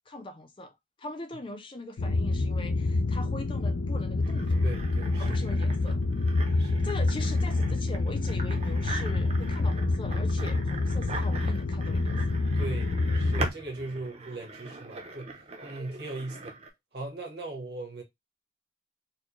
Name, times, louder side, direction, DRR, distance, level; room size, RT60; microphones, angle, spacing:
voice 1, 0.1-4.6 5.2-6.0 6.5-12.1, left 2 dB, 25° left, 0.5 m, -41 dB
sound 1, 2.0-13.5, left 2 dB, 75° left, 0.4 m, -27 dB
sound 2, 4.2-16.7, right 3 dB, 35° right, 0.7 m, -42 dB
voice 2, 4.6-5.4 6.6-6.9 12.5-16.6 16.9-18.0, right 2 dB, 55° right, 1.3 m, -39 dB
4.3 x 2.1 x 3.1 m
head